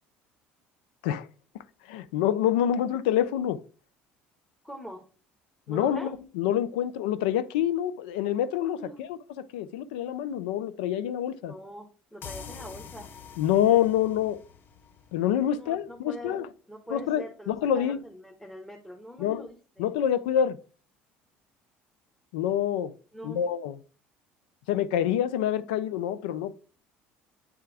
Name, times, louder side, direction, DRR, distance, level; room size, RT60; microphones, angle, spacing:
voice 1, 1.9-3.6 5.7-11.5 13.4-14.4 15.1-16.5 16.9-18.0 19.2-19.5 19.8-20.6 22.3-22.9 23.2-23.8 24.7-26.5, left 10 dB, 85° left, 0.4 m, -27 dB
voice 2, 4.6-5.1 5.7-6.1 8.8-9.0 11.5-13.1 15.5-16.4 16.7-19.9 23.1-23.4, equal, 5° left, 1.1 m, -43 dB
sound 1, 12.2-15.7, left 6 dB, 45° left, 0.7 m, -45 dB
8.5 x 3.3 x 3.4 m
supercardioid pair, 85°, 5 cm